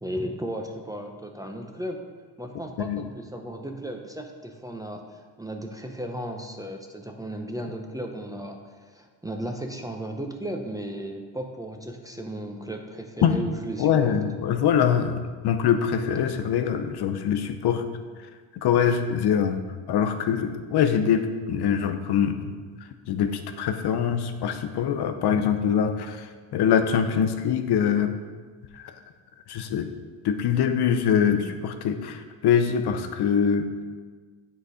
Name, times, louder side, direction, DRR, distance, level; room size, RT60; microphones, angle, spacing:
voice 1, 0.0-2.0 2.4-14.2 28.9-29.0, right 1 dB, 10° right, 3 dB, 0.6 m, -35 dB
voice 2, 13.8-17.8 18.6-19.6 19.9-22.5 23.1-26.3 26.5-28.1 29.5-29.9 30.2-33.7, left 8 dB, 55° left, 7 dB, 0.7 m, -23 dB
7.9 x 4.2 x 4.9 m, 1.5 s
cardioid pair, 90°, 46 cm